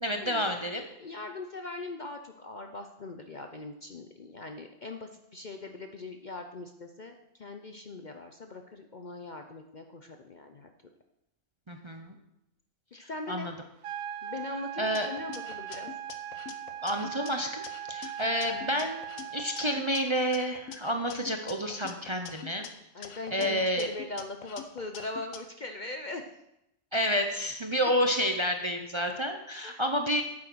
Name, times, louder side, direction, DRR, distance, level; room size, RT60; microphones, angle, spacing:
voice 1, 0.0-0.9 11.7-12.1 12.9-13.5 14.8-15.1 16.8-22.7 23.3-23.9 26.9-30.2, equal, 25° right, 4 dB, 0.7 m, -30 dB
voice 2, 1.0-10.7 13.1-13.5 14.2-15.9 22.9-26.3 29.6-29.8, left 2 dB, 45° left, 5 dB, 0.7 m, -41 dB
sound 1, 13.8-19.8, right 10 dB, 80° right, 1.0 m, -39 dB
sound 2, 14.9-17.3 17.6-20.0 20.3-22.7 23.0-25.4, left 8 dB, 75° left, 1.3 m, -45 dB
9.0 x 8.6 x 6.2 m, 0.85 s
omnidirectional pair, 1.4 m